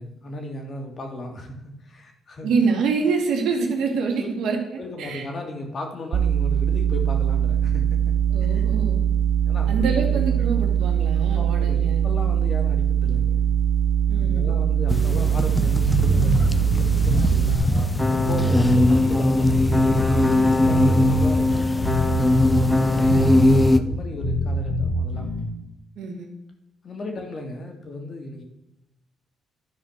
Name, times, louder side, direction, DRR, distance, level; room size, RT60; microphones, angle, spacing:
voice 1, 0.0-2.5 4.2-4.3 4.8-8.1 8.5-8.6 9.4-10.5 11.2-13.5 14.2-17.7 18.0-19.7 20.6-22.0 22.5-22.6 23.7-25.3 26.8-28.4, left 1 dB, 45° left, 3 dB, 2.4 m, -36 dB
voice 2, 2.4-5.3 8.3-9.0 9.7-12.0 14.1-14.5 18.4-18.7 20.2-20.5 22.9-23.4 26.0-26.3, right 4 dB, 80° right, 2 dB, 2.1 m, -26 dB
sound 1, 6.1-17.6, right 9 dB, 65° right, 0.7 m, -21 dB
sound 2, 14.9-23.8, left 2 dB, 10° left, 0.7 m, -21 dB
sound 3, 15.8-25.4, equal, 80° left, 3.1 m, -24 dB
11.5 x 4.9 x 6.6 m, 0.89 s
cardioid pair, 90°, 0 cm